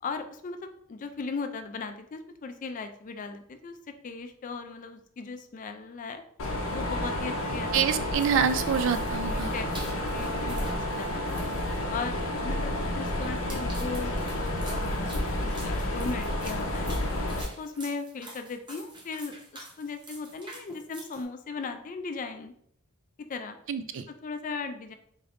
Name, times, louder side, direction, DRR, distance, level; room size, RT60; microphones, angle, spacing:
voice 1, 0.0-6.2 6.7-8.1 9.3-11.4 11.9-17.0 17.4-22.5 23.3-23.6 24.1-24.9, left 4 dB, 40° left, 8 dB, 0.3 m, -38 dB
Mechanisms, 6.4-17.4, left 1 dB, 85° left, 0.7 m, -30 dB
voice 2, 7.7-9.5 23.7-24.0, right 7 dB, 60° right, 10 dB, 0.3 m, -26 dB
sound 1, 8.2-21.2, right 2 dB, 20° right, 0.7 m, -48 dB
3.9 x 3.3 x 2.5 m, 0.65 s
head